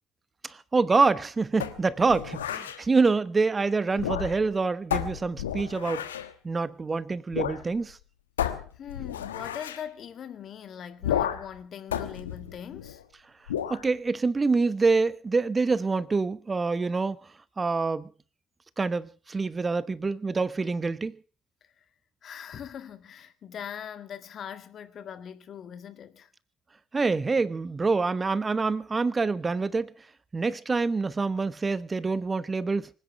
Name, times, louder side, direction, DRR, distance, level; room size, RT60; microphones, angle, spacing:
voice 1, 0.4-6.0 6.4-8.0 13.7-17.2 17.6-18.1 18.8-21.2 26.9-29.9 30.3-32.9, right 4 dB, 25° right, 1.0 m, -26 dB
sound 1, 1.6-2.8 3.9-4.5 4.9-6.3 7.3-7.6 7.9-8.0 8.4-9.8 11.0-11.6 11.9-13.0 13.5-13.8, left 10 dB, 85° left, 1.2 m, -32 dB
voice 2, 8.8-13.0 22.2-26.3, left 8 dB, 50° left, 1.9 m, -41 dB
25.0 x 10.0 x 5.7 m
hypercardioid pair, 55°, 0 cm